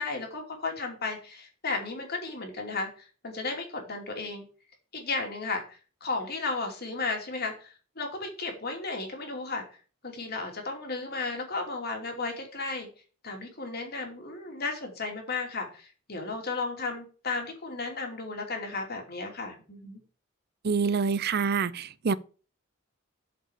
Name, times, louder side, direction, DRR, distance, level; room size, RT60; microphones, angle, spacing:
voice 1, 0.0-4.4 4.9-9.6 10.0-12.9 13.2-20.0, left 3 dB, 50° left, 2.8 m, -34 dB
voice 2, 20.6-22.2, right 5 dB, 50° right, 0.6 m, -26 dB
7.9 x 5.2 x 7.2 m
head